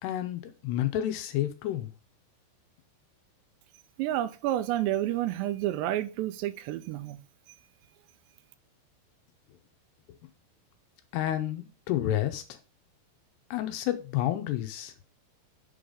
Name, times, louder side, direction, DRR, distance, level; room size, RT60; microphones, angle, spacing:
voice 1, 0.0-1.9 11.1-12.6 13.5-14.9, left 12 dB, 80° left, 2.7 m, -30 dB
voice 2, 4.0-7.2, right 13 dB, 85° right, 2.7 m, -30 dB
7.8 x 3.9 x 4.9 m
omnidirectional pair, 5.0 m